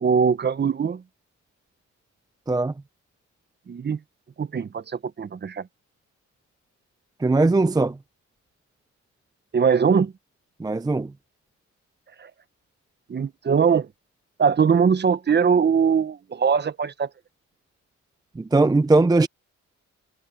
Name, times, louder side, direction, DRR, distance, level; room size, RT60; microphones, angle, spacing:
voice 1, 0.0-1.0 3.7-4.0 4.4-5.7 9.5-10.1 12.2-12.3 13.1-13.9 14.4-17.1, right 6 dB, 35° right, 1.1 m, -21 dB
voice 2, 7.2-7.9 10.6-11.1 18.4-19.3, right 2 dB, 15° right, 0.6 m, -19 dB
cardioid pair, 90°, 30 cm